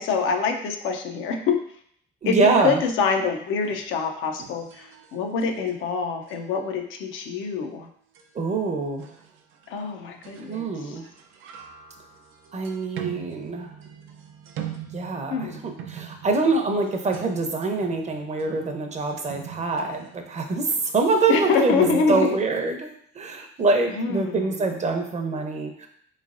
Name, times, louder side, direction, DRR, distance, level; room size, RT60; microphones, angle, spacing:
voice 1, 0.0-1.6 2.3-7.9 9.7-10.7 15.3-15.6 21.3-22.4 24.0-24.5, left 5 dB, 85° left, 4 dB, 0.5 m, -25 dB
voice 2, 2.2-2.8 8.3-9.1 10.5-11.0 12.5-13.7 14.9-22.9 23.1-25.9, right 3 dB, 35° right, 4 dB, 0.6 m, -25 dB
sound 1, 3.6-4.0 4.4-5.8 6.3-6.5 8.1-8.2 9.0-9.7 10.2-10.6 10.9-22.2, right 8 dB, 85° right, 0.5 m, -41 dB
3.6 x 3.1 x 2.5 m, 0.64 s
cardioid pair, 90°, 20 cm